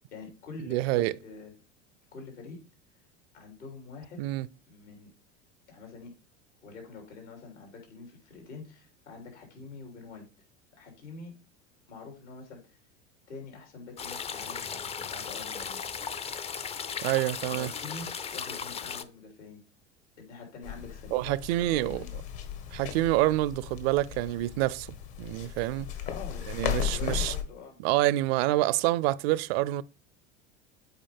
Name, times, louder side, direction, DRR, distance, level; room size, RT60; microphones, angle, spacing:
voice 1, 0.1-1.5 2.1-2.6 3.3-4.2 4.7-5.1 5.7-6.1 6.6-10.2 10.8-11.3 11.9-12.8 13.3-15.9 17.5-19.6 20.2-21.3 21.6-22.1 26.0-27.8, left 4 dB, 75° left, 3.3 m, -45 dB
voice 2, 0.7-1.1 4.2-4.5 17.0-17.7 21.1-22.0 22.7-24.9 25.2-25.9 26.5-27.3 27.8-29.8, right 17 dB, 60° right, 0.5 m, -27 dB
sound 1, 14.0-19.0, left 6 dB, 20° left, 0.4 m, -36 dB
sound 2, 20.6-27.4, left 9 dB, 55° left, 1.5 m, -36 dB
8.0 x 4.8 x 3.5 m
hypercardioid pair, 85°, 35 cm